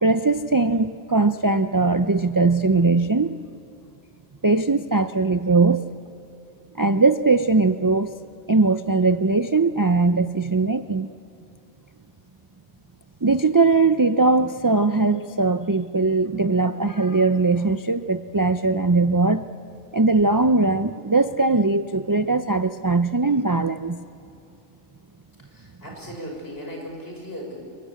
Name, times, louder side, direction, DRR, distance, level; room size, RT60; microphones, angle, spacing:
voice 1, 0.0-3.4 4.4-5.9 6.8-8.1 8.5-11.1 13.2-19.4 19.9-24.0, right 3 dB, 25° right, 10 dB, 0.4 m, -20 dB
voice 2, 25.5-27.6, equal, 60° left, 0 dB, 6.4 m, -37 dB
26.0 x 23.5 x 8.6 m, 2.6 s
omnidirectional pair, 1.2 m